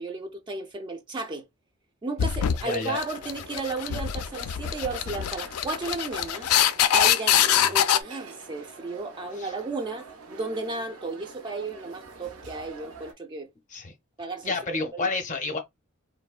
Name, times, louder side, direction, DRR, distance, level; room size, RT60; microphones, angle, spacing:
voice 1, 0.0-1.4 2.0-6.5 6.9-10.1 10.3-13.5 14.2-15.1, right 3 dB, 20° right, 0.3 m, -34 dB
sound 1, 2.2-8.0, left 10 dB, 90° left, 0.3 m, -24 dB
voice 2, 2.6-3.0 7.6-7.7 9.4-9.5 13.7-13.9 14.4-15.6, left 3 dB, 35° left, 0.6 m, -30 dB
sound 2, 3.1-13.1, right 3 dB, 85° right, 0.6 m, -46 dB
3.0 x 2.1 x 2.3 m
head